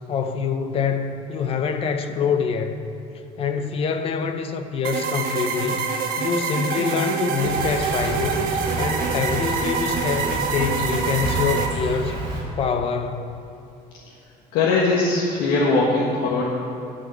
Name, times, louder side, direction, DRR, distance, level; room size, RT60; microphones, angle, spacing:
voice 1, 0.1-2.8 3.4-5.9 6.2-8.4 8.8-12.2 12.6-13.4, left 6 dB, 35° left, 8 dB, 0.6 m, -25 dB
sound 1, 4.8-11.7, right 5 dB, 65° right, 1.2 m, -26 dB
Insect, 7.4-12.4, right 2 dB, 30° right, 2.3 m, -30 dB
voice 2, 14.5-16.5, left 3 dB, 75° left, -5 dB, 1.5 m, -20 dB
11.0 x 5.3 x 7.5 m, 2.7 s
cardioid pair, 165°, 16 cm